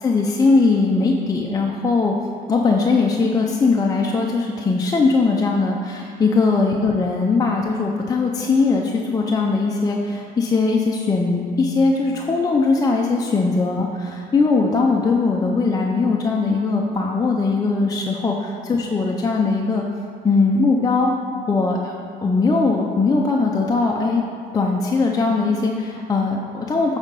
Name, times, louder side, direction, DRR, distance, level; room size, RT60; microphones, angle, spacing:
voice 1, 0.0-2.1 2.5-19.8 20.2-21.1 21.5-21.9 22.2-24.2 24.5-27.0, left 3 dB, 20° left, 0 dB, 0.5 m, -20 dB
8.0 x 4.1 x 5.3 m, 2.3 s
cardioid pair, 110°, 17 cm